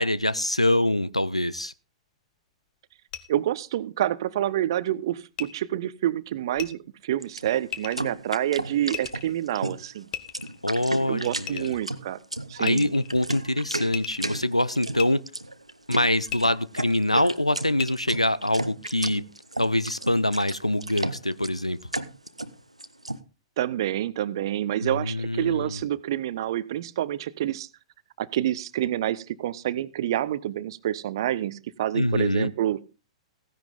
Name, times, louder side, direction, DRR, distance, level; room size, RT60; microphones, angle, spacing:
voice 1, 0.0-1.7 10.6-11.8 12.6-15.2 15.9-19.2 19.6-21.8 24.8-25.8 31.9-32.5, left 1 dB, 90° left, 0.6 m, -24 dB
sound 1, 3.1-3.2 5.4-5.5 6.5-6.7 7.7-8.0 8.9-9.3 10.1-10.6 11.5-11.8 12.6-13.2 13.9-14.3 15.0-15.1 16.3-16.4 17.8-17.9, left 11 dB, 30° left, 1.2 m, -35 dB
voice 2, 3.3-10.1 11.1-12.2 12.5-12.8 23.6-27.7 28.2-32.8, right 12 dB, 50° right, 0.7 m, -28 dB
sound 2, 7.2-23.2, right 1 dB, 85° right, 0.8 m, -34 dB
15.5 x 10.5 x 3.8 m
figure-of-eight pair, 105°, 3 cm